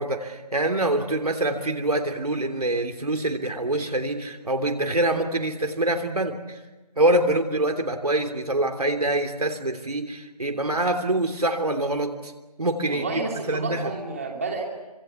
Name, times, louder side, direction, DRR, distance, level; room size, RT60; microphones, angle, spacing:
voice 1, 0.0-6.6 7.0-12.3 12.6-13.2 13.5-13.9, right 1 dB, 70° right, 4 dB, 3.2 m, -25 dB
voice 2, 12.8-14.6, right 3 dB, 20° right, 0 dB, 2.9 m, -30 dB
26.0 x 23.5 x 7.1 m, 1.2 s
figure-of-eight pair, 175°, 20 cm